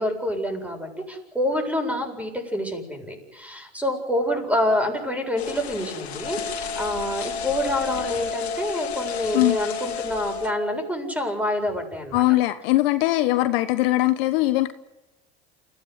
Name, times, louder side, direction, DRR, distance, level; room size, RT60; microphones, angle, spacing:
voice 1, 0.0-12.2, left 1 dB, 5° right, 4 dB, 7.7 m, -27 dB
sound 1, 5.4-10.5, left 9 dB, 85° left, 2.7 m, -36 dB
Wind instrument woodwind instrument, 6.2-10.9, left 5 dB, 20° left, 2.0 m, -33 dB
voice 2, 12.1-14.7, left 17 dB, 70° left, 10 dB, 1.3 m, -21 dB
29.0 x 16.5 x 8.3 m, 1.0 s
hypercardioid pair, 80°, 31 cm